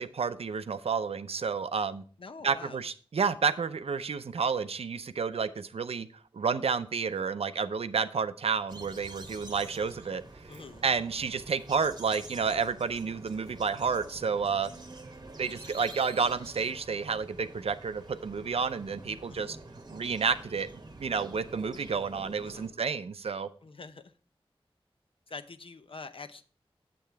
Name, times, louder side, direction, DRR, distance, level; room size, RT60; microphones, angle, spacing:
voice 1, 0.0-2.0 2.4-6.1 6.3-10.2 10.5-14.7 15.4-19.6 19.9-20.7 21.0-23.5, right 5 dB, 80° right, 0.5 m, -30 dB
voice 2, 2.2-2.8 10.5-10.8 19.3-19.5 22.4-22.8 23.6-24.1 25.3-26.4, left 4 dB, 65° left, 0.6 m, -45 dB
sound 1, 8.7-22.7, right 2 dB, 45° right, 1.0 m, -47 dB
7.6 x 7.4 x 3.4 m
wide cardioid pair, 80°, 10 cm